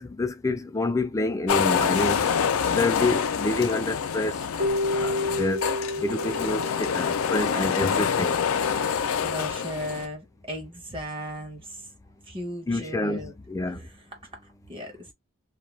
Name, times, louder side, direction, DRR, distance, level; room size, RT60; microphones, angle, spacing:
voice 1, 0.0-2.3 2.7-4.4 5.0-5.6 6.0-8.4 12.7-13.2 13.5-13.8, left 2 dB, 15° left, 0.4 m, -27 dB
sound 1, 1.5-10.1, left 7 dB, 85° left, 0.4 m, -26 dB
Keyboard (musical), 4.6-7.8, left 1 dB, 50° right, 1.0 m, -30 dB
voice 2, 9.2-11.8 12.3-13.3 13.8-13.9 14.7-15.1, equal, 25° right, 0.8 m, -36 dB
2.4 x 2.2 x 3.0 m
head